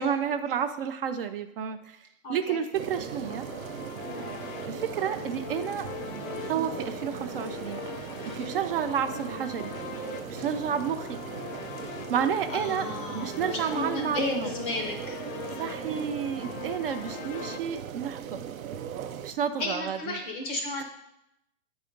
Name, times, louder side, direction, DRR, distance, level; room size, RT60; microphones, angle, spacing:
voice 1, 0.0-2.0 2.3-3.5 4.7-5.9 6.5-7.8 8.3-9.7 10.3-11.2 12.1-12.9 13.1-14.5 15.6-18.4 19.2-20.2 20.8-20.9, right 8 dB, 45° right, 9 dB, 0.4 m, -30 dB
voice 2, 2.2-2.6 4.1-4.3 8.4-8.6 10.3-10.5 12.5-13.4 13.7-15.2 19.6-20.8, left 2 dB, 15° left, 3 dB, 0.5 m, -34 dB
sound 1, 2.7-19.3, right 9 dB, 90° right, 0.7 m, -39 dB
sound 2, 2.8-17.6, left 9 dB, 70° left, 0.7 m, -41 dB
8.4 x 4.0 x 5.0 m, 0.83 s
hypercardioid pair, 155°, 40 cm